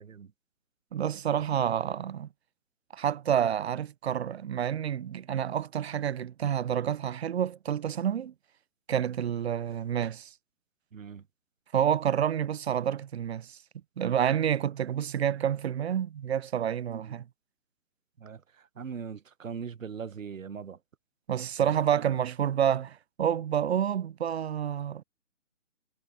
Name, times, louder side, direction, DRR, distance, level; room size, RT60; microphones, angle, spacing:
voice 1, 0.9-2.3 2.9-8.3 8.9-10.3 11.7-13.6 14.0-17.2 21.3-25.0, right 9 dB, 55° right, 0.8 m, -28 dB
voice 2, 10.9-11.2 16.9-17.0 18.2-18.4 18.8-20.8, right 6 dB, 90° right, 1.2 m, -40 dB
hypercardioid pair, 155°, 38 cm